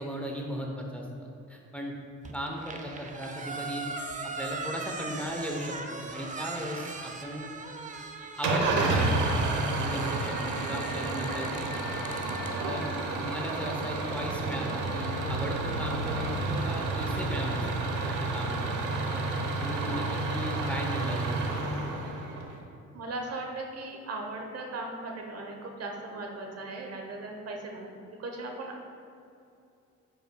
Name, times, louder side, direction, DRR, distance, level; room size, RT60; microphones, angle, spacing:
voice 1, 0.0-1.9 2.3-3.9 4.4-7.5 8.4-9.1 9.8-12.0 12.6-12.9 13.2-18.8 19.1-19.2 19.6-21.4, equal, 5° left, -1 dB, 0.9 m, -37 dB
sound 1, 2.2-12.5, right 3 dB, 25° right, 0.5 m, -40 dB
Engine starting / Idling, 8.4-22.6, right 2 dB, 85° right, 0.9 m, -30 dB
Screaming, 9.8-13.2, left 7 dB, 50° left, 0.6 m, -45 dB
voice 2, 22.9-28.8, right 2 dB, 55° right, 1 dB, 1.0 m, -38 dB
8.4 x 5.6 x 2.3 m, 2.6 s
cardioid pair, 90°, 30 cm